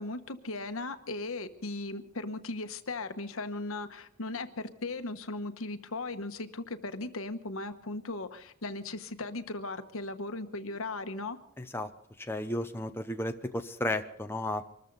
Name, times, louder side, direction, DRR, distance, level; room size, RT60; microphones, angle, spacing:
voice 1, 0.0-11.4, left 2 dB, 75° left, 9 dB, 1.2 m, -37 dB
voice 2, 11.6-11.9 12.2-14.6, left 1 dB, 10° left, 6 dB, 0.7 m, -33 dB
24.5 x 13.5 x 4.0 m, 0.69 s
head